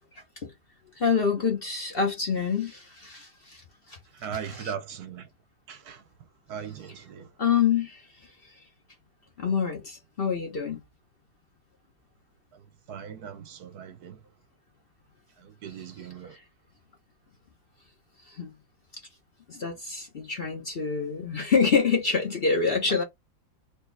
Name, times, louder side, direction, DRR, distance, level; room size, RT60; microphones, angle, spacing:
voice 1, 0.1-0.5 1.0-3.6 3.9-4.0 4.5-4.7 7.4-8.1 8.4-8.5 9.4-10.8 18.3-18.5 19.5-23.0, left 6 dB, 45° left, 0.7 m, -26 dB
voice 2, 4.1-5.3 5.7-6.0 6.5-7.3 12.5-12.6 12.9-14.2 15.4-16.4, right 8 dB, 65° right, 1.1 m, -39 dB
4.3 x 2.9 x 3.3 m
omnidirectional pair, 2.1 m